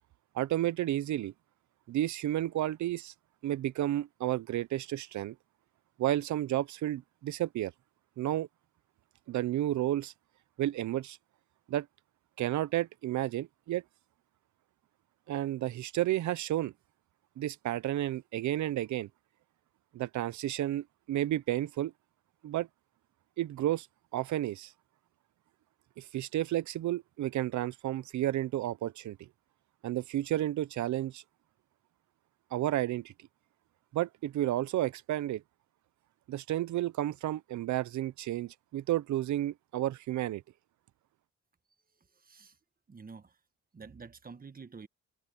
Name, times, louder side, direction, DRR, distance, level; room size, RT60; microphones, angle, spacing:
voice 1, 0.3-1.3 1.9-3.1 3.4-5.4 6.0-7.7 8.2-8.5 9.3-10.1 10.6-11.2 11.7-11.9 12.4-13.8 15.3-16.7 17.4-19.1 19.9-21.9 22.4-22.7 23.4-23.9 24.1-24.7 26.0-29.3 29.8-31.2 32.5-33.1 33.9-35.4 36.3-40.4, right 13 dB, 70° right, 0.8 m, -31 dB
voice 2, 42.2-42.5 42.9-43.3 43.7-44.9, right 5 dB, 30° right, 1.5 m, -48 dB
cardioid pair, 90°, 30 cm